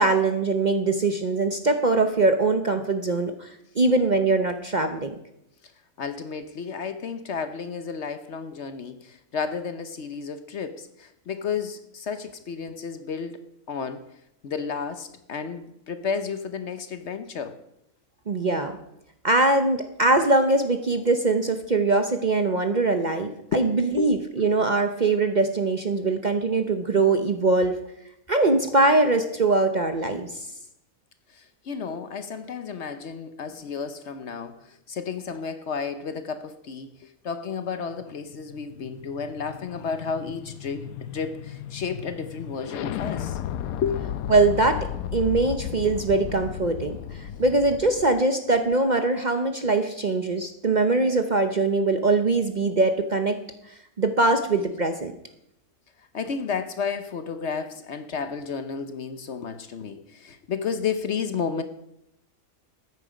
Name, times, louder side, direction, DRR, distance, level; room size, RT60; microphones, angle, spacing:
voice 1, 0.0-3.5 3.8-5.1 18.3-18.8 19.2-27.8 28.3-30.4 44.3-47.0 47.4-53.4 54.0-55.1, right 3 dB, 40° right, 7 dB, 0.7 m, -22 dB
voice 2, 6.0-14.0 14.4-17.6 23.5-24.1 31.3-43.4 43.8-44.0 56.1-61.6, left 6 dB, 55° left, 10 dB, 1.0 m, -32 dB
sound 1, 38.0-48.2, left 10 dB, 80° left, 1.1 m, -35 dB
13.5 x 9.6 x 5.0 m, 0.80 s
omnidirectional pair, 1.5 m